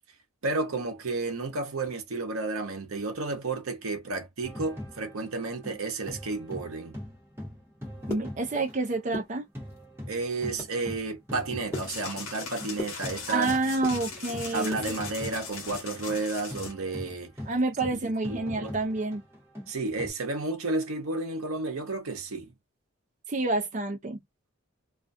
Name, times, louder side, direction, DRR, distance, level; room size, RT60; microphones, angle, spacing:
voice 1, 0.4-7.0 10.1-13.6 14.5-17.3 18.0-18.8 19.7-22.5, right 3 dB, 85° right, 0.7 m, -32 dB
sound 1, 4.4-9.3 9.5-20.1, equal, 10° right, 0.9 m, -42 dB
sound 2, 7.8-8.8 9.0-9.8 10.3-10.8 11.2-13.4 13.7-14.9 15.3-16.8 17.1-17.2 17.6-17.8 18.1-18.4, left 1 dB, 10° left, 1.1 m, -40 dB
voice 2, 8.1-9.4 13.3-15.0 17.5-19.2 23.3-24.2, right 2 dB, 35° right, 0.5 m, -28 dB
sound 3, 11.7-16.7, left 5 dB, 75° left, 1.0 m, -40 dB
2.4 x 2.3 x 2.5 m
head